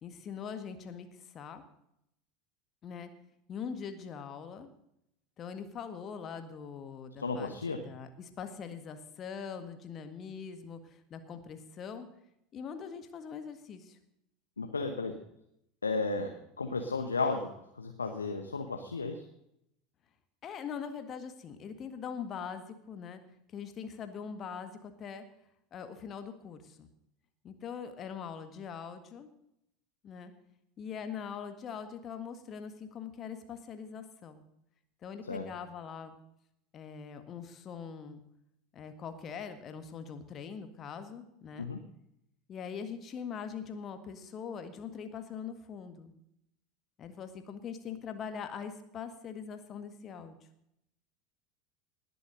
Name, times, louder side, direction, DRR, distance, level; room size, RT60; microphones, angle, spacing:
voice 1, 0.0-1.6 2.8-3.1 3.5-4.7 5.4-12.1 12.5-14.0 20.4-23.2 23.5-25.2 25.7-26.9 27.4-29.3 30.0-30.3 30.8-34.4 35.0-36.2 36.7-38.2 38.7-41.6 42.5-46.1 47.0-50.4, left 7 dB, 35° left, 8 dB, 1.7 m, -42 dB
voice 2, 7.2-7.8 14.6-15.1 15.8-16.3 16.6-19.2 35.2-35.5 41.6-41.8, left 3 dB, 80° left, 5 dB, 1.1 m, -34 dB
19.5 x 7.0 x 6.4 m, 0.78 s
figure-of-eight pair, 75°, 0 cm